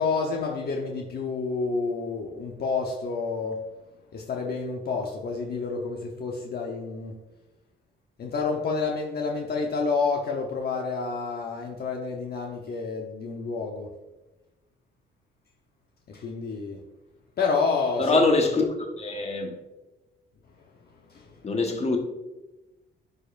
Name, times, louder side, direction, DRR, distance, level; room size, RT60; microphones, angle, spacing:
voice 1, 0.0-3.6 4.1-7.2 8.2-13.9 16.1-16.8 17.4-18.2 21.1-21.4, left 4 dB, 50° left, 1.0 m, -29 dB
voice 2, 18.0-19.6 21.4-22.0, left 3 dB, 35° left, 1.3 m, -24 dB
11.0 x 5.1 x 2.5 m
cardioid pair, 90°, 20 cm